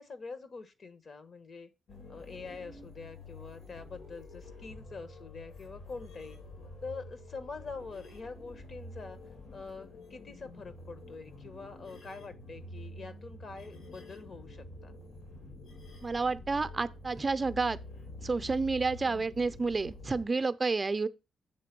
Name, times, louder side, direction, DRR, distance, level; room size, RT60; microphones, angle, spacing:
voice 1, 0.0-1.7 2.1-6.4 6.8-9.2 9.5-14.9 19.0-19.3, left 4 dB, 55° left, 1.2 m, -45 dB
sound 1, 1.9-20.2, left 2 dB, 75° left, 2.8 m, -48 dB
voice 2, 16.0-17.8 18.2-21.1, right 4 dB, 35° right, 0.6 m, -30 dB
8.3 x 3.5 x 6.0 m
supercardioid pair, 55°, 0 cm